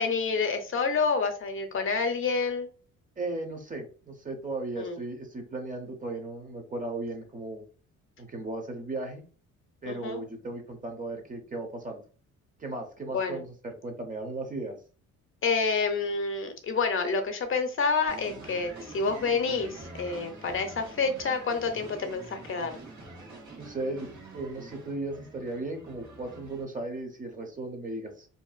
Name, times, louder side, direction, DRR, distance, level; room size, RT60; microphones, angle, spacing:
voice 1, 0.0-2.7 4.8-5.0 9.9-10.2 13.1-13.4 15.4-22.8, left 4 dB, 45° left, 7 dB, 0.5 m, -28 dB
voice 2, 3.2-7.6 8.2-9.2 9.8-12.0 12.6-14.8 23.6-28.3, right 2 dB, 25° right, 4 dB, 0.7 m, -36 dB
sound 1, 18.1-26.6, right 2 dB, 75° right, 1.2 m, -46 dB
2.6 x 2.4 x 2.3 m, 0.38 s
cardioid pair, 90°, 30 cm